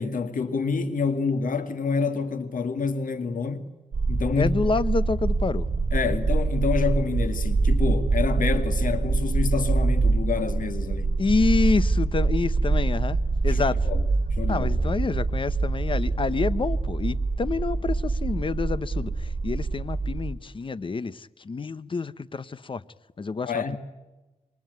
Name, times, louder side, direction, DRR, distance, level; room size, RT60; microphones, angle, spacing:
voice 1, 0.0-3.7 4.1-4.5 5.9-11.2 13.5-14.0 14.4-14.7 23.5-23.8, left 5 dB, 85° left, 2.2 m, -28 dB
sound 1, 3.9-20.3, right 3 dB, 55° right, 6.5 m, -25 dB
voice 2, 4.4-5.7 11.2-13.2 13.4-13.8 14.5-22.8 23.2-23.8, left 4 dB, 40° left, 0.9 m, -27 dB
26.5 x 23.0 x 9.4 m
wide cardioid pair, 125°, 14 cm